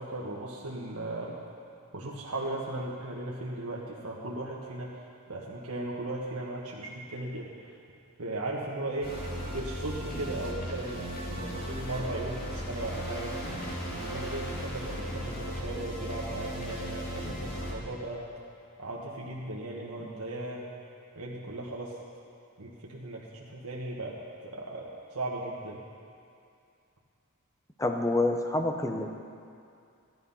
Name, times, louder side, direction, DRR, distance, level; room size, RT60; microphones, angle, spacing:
voice 1, 0.0-1.3 1.9-5.0 5.3-7.7 8.2-9.1 9.5-11.0 11.3-13.3 13.9-18.2 18.8-20.7 21.1-22.0 22.6-24.2 24.4-25.8, right 2 dB, 80° right, -3 dB, 1.5 m, -37 dB
sound 1, 9.0-17.7, equal, 45° left, 2.4 m, -36 dB
voice 2, 27.8-29.2, left 2 dB, 15° left, 4 dB, 0.7 m, -28 dB
16.0 x 11.5 x 5.6 m, 2.5 s
head